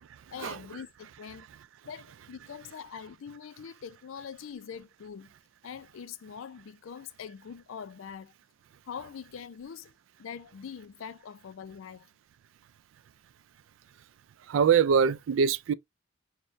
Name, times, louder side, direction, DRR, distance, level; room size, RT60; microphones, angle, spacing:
voice 1, 0.3-1.5 1.8-5.3 5.6-8.3 8.9-9.9 10.2-12.1, left 7 dB, 75° left, 0.4 m, -43 dB
voice 2, 14.5-15.7, right 6 dB, 70° right, 0.3 m, -23 dB
6.2 x 2.1 x 2.5 m
head